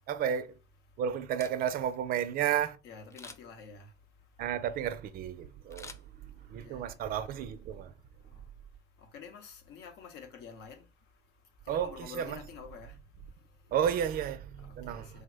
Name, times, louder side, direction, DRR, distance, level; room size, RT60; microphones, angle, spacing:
voice 1, 0.1-0.6 1.0-2.8 4.4-7.9 11.7-12.4 13.7-15.2, right 9 dB, 60° right, 0.4 m, -32 dB
Camera, 1.2-2.0 3.1-3.7 5.7-6.6 7.1-7.2, left 3 dB, 15° left, 0.3 m, -50 dB
voice 2, 2.8-3.9 5.7-5.8 6.4-6.9 8.2-8.5 9.0-13.7 14.6-15.2, left 6 dB, 80° left, 0.8 m, -49 dB
3.3 x 2.1 x 3.4 m
cardioid pair, 110°, 17 cm